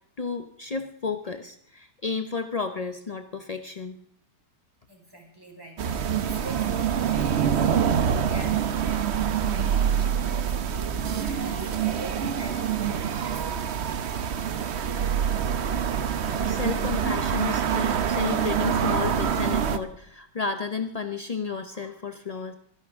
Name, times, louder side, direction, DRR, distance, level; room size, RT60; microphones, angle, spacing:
voice 1, 0.2-4.0 16.5-22.5, left 5 dB, 55° left, 7 dB, 0.4 m, -32 dB
voice 2, 4.9-13.9, right 1 dB, 10° right, 0 dB, 4.4 m, -45 dB
sound 1, 5.8-19.8, right 8 dB, 50° right, 0.9 m, -25 dB
23.5 x 11.0 x 3.6 m, 0.69 s
omnidirectional pair, 1.8 m